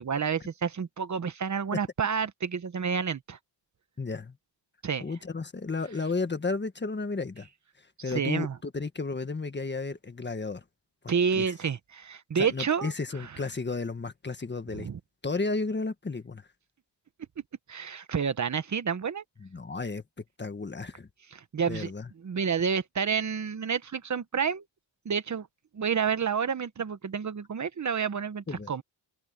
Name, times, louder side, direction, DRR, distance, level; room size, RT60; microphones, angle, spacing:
voice 1, 0.0-3.4 4.8-5.0 8.1-8.6 11.1-12.9 13.2-13.3 14.7-15.0 17.7-19.2 21.3-21.9 22.2-24.6 25.0-25.5 25.7-28.8, right 6 dB, 40° right, 1.1 m, -29 dB
voice 2, 4.0-4.4 5.0-7.5 8.0-10.6 11.0-11.5 12.4-14.9 15.2-16.4 19.4-20.0 20.4-21.1 21.7-22.1 28.5-28.7, left 3 dB, 25° left, 1.6 m, -33 dB
wide cardioid pair, 125°, 44 cm